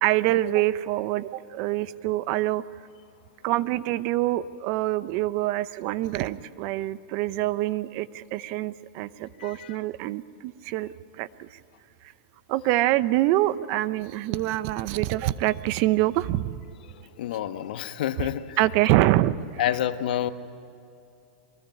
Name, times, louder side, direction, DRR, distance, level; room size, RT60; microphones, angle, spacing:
voice 1, 0.0-2.6 3.4-11.5 12.5-16.6 18.2-18.3 18.6-19.6, right 15 dB, 45° right, 16 dB, 0.8 m, -25 dB
voice 2, 9.4-9.8 16.9-18.6 19.6-20.3, left 11 dB, 75° left, 10 dB, 1.2 m, -29 dB
23.0 x 20.0 x 9.3 m, 2.5 s
supercardioid pair, 135°, 5 cm